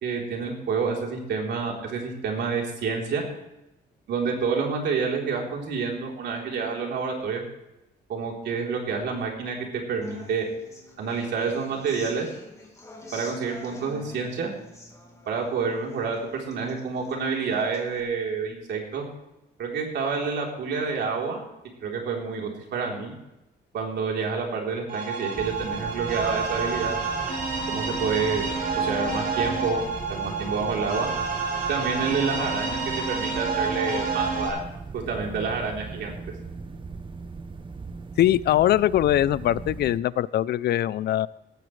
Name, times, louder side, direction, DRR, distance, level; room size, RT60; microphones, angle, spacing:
voice 1, 0.0-3.2 4.1-7.4 8.1-10.5 11.0-12.3 13.1-14.5 15.3-19.0 19.6-21.4 21.8-23.1 23.7-27.0 27.7-28.4 28.8-29.8 30.1-31.1 31.7-34.6 34.9-36.2, right 5 dB, 80° right, 0 dB, 3.7 m, -28 dB
Human voice / Acoustic guitar, 10.0-18.0, left 2 dB, 15° left, 2.6 m, -47 dB
sound 1, 24.9-34.5, right 4 dB, 60° right, 5.3 m, -29 dB
sound 2, 25.3-40.0, right 4 dB, 30° right, 0.8 m, -39 dB
voice 2, 38.2-41.3, left 12 dB, 70° left, 19 dB, 0.5 m, -22 dB
18.5 x 14.0 x 3.3 m, 0.93 s
cardioid pair, 135°, 18 cm